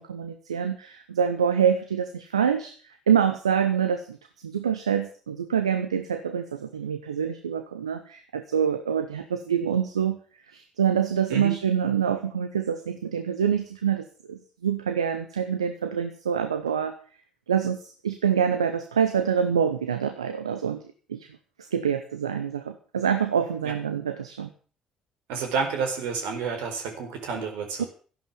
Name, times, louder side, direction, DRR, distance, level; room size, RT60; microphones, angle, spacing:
voice 1, 0.0-2.7 3.1-4.2 4.4-10.2 10.5-16.9 17.5-17.8 18.0-20.8 21.1-21.3 21.6-24.5 27.8-27.9, right 8 dB, 85° right, 9 dB, 0.9 m, -26 dB
voice 2, 25.3-27.9, right 5 dB, 70° right, 4 dB, 4.3 m, -30 dB
14.5 x 11.0 x 7.1 m, 0.41 s
figure-of-eight pair, 50°, 3 cm